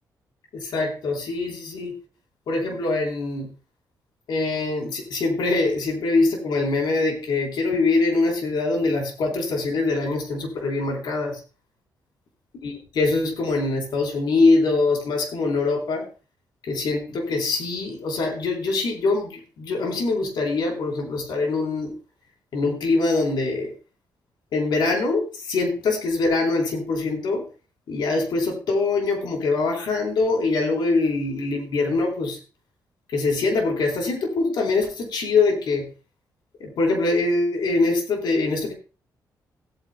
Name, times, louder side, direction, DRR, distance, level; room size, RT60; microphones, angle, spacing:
voice 1, 0.5-2.0 2.5-3.5 4.3-11.4 12.6-16.0 16.7-21.9 22.5-23.7 24.5-27.4 27.9-32.4 33.1-35.9 36.6-38.7, left 3 dB, 75° left, 1 dB, 3.7 m, -23 dB
17.5 x 9.2 x 2.2 m, 0.32 s
cardioid pair, 75°, 8 cm